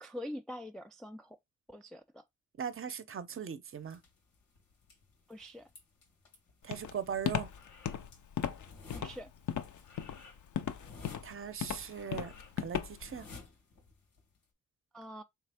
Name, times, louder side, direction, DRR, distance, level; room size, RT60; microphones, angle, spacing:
voice 1, 0.0-1.4 1.7-2.2 5.3-5.7 8.9-9.3 14.9-15.2, equal, ahead, 0.3 m, -44 dB
voice 2, 2.6-4.0 6.6-7.5 11.2-13.3, right 7 dB, 40° right, 0.6 m, -39 dB
sound 1, 3.8-14.4, left 4 dB, 80° left, 1.7 m, -55 dB
Walk footsteps, 6.7-13.2, left 9 dB, 60° left, 0.6 m, -36 dB
3.3 x 3.3 x 3.4 m
cardioid pair, 75°, 34 cm